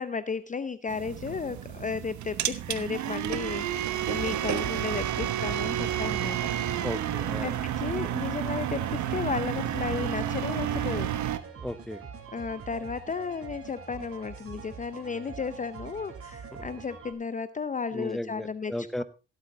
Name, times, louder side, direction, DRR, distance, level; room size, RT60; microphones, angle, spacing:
voice 1, 0.0-6.5 7.4-11.1 12.3-18.7, left 5 dB, 25° left, 13 dB, 0.6 m, -34 dB
sound 1, 0.9-11.4, right 10 dB, 70° right, 1.1 m, -30 dB
sound 2, 4.1-17.1, right 6 dB, 45° right, 3.2 m, -44 dB
voice 2, 6.8-7.5 11.6-12.0 16.5-16.6 17.9-19.0, left 1 dB, ahead, 13 dB, 0.9 m, -35 dB
16.5 x 8.3 x 3.9 m, 0.31 s
cardioid pair, 90°, 30 cm